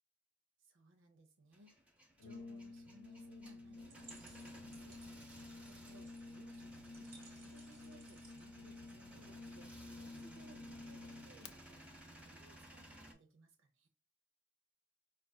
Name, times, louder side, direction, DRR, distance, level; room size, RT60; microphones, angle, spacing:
voice 1, 0.6-1.7 2.2-5.0 5.6-13.9, right 1 dB, 85° right, 4 dB, 0.6 m, -64 dB
Male speech man speaking / Vehicle / Engine starting, 1.5-13.1, right 1 dB, 5° right, 0.5 m, -58 dB
Brass instrument, 2.2-11.5, left 3 dB, 90° left, 0.4 m, -52 dB
sound 1, 3.8-9.4, right 4 dB, 45° right, 1.2 m, -63 dB
4.8 x 2.4 x 2.2 m, 0.34 s
head